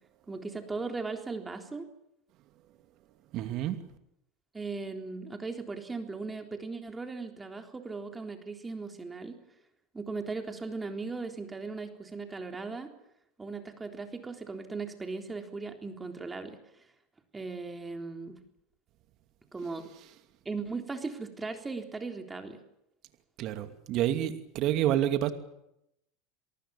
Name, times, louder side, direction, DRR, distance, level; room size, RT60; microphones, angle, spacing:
voice 1, 0.3-1.9 4.5-9.4 9.9-12.9 13.4-16.6 17.3-18.4 19.5-19.9 20.5-22.6, right 4 dB, 15° right, 5 dB, 3.6 m, -38 dB
voice 2, 3.3-3.8 23.4-25.3, right 12 dB, 55° right, 9 dB, 2.6 m, -28 dB
27.5 x 19.0 x 7.2 m, 0.80 s
hypercardioid pair, 95°, 0 cm